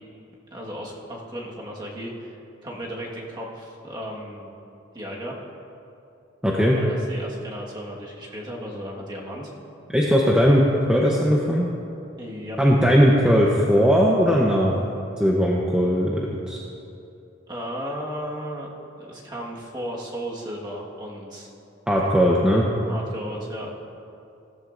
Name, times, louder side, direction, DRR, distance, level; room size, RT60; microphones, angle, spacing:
voice 1, 0.5-2.4 2.6-4.5 4.9-5.4 6.7-9.5 12.2-12.6 17.5-18.7 19.0-21.5 22.8-23.7, equal, 20° right, -3 dB, 1.5 m, -35 dB
voice 2, 6.4-6.8 9.9-11.7 12.6-14.7 15.2-16.6 21.9-22.7, equal, 5° right, -4 dB, 0.8 m, -19 dB
16.0 x 13.5 x 2.6 m, 2.7 s
head